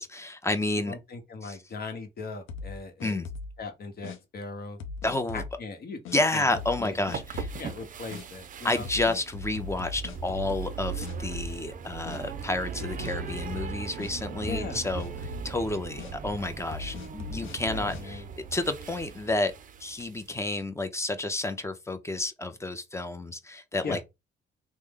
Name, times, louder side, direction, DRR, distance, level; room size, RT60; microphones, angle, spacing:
voice 1, 0.0-1.0 1.4-1.6 3.0-3.3 5.0-5.4 6.1-7.5 8.6-18.2 18.5-19.5 19.8-24.0, left 2 dB, 15° left, 0.6 m, -30 dB
voice 2, 0.9-3.2 3.6-4.8 5.3-6.5 6.8-7.2 7.6-8.9 14.4-14.8 17.6-18.2 23.8-24.0, left 4 dB, 50° left, 1.0 m, -38 dB
sound 1, 2.5-3.6 4.0-4.2 4.8-5.5 6.0-6.2 6.5-6.8 7.1-7.6 8.1-8.2 8.8-10.8 11.0-11.7 12.0-12.2 12.8-14.1 14.4-14.7 15.0-15.5 16.0-16.1 16.7-18.0, left 4 dB, 85° left, 0.6 m, -39 dB
sound 2, 6.4-20.3, right 6 dB, 40° right, 0.4 m, -39 dB
3.1 x 2.1 x 3.6 m
cardioid pair, 90°, 20 cm